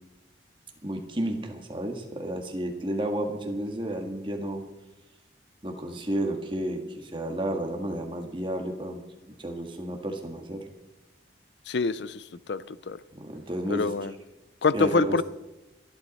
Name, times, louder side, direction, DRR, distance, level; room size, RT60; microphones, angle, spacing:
voice 1, 0.8-4.6 5.6-9.0 9.4-10.6 13.1-14.1 14.7-15.2, right 1 dB, 25° right, 4 dB, 1.7 m, -32 dB
voice 2, 11.7-12.2 12.5-13.0 13.7-14.1 14.6-15.2, left 4 dB, 70° left, 16 dB, 0.5 m, -25 dB
23.0 x 11.0 x 4.2 m, 1.0 s
head